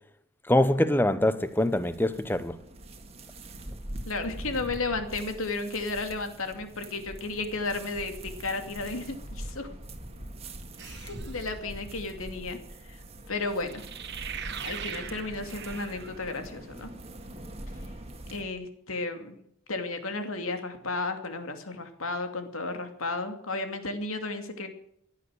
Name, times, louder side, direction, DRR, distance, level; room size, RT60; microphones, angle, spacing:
voice 1, 0.5-2.6, left 1 dB, 10° left, 0.9 m, -24 dB
sound 1, 0.7-18.4, right 1 dB, 30° right, 1.9 m, -43 dB
voice 2, 4.1-9.7 10.8-12.6 12.9-13.8 14.6-16.9 18.3-19.4 19.7-24.7, left 3 dB, 75° left, 2.6 m, -33 dB
sound 2, 10.8-11.5 13.6-16.5, right 8 dB, 50° right, 1.6 m, -41 dB
16.5 x 11.0 x 6.4 m
head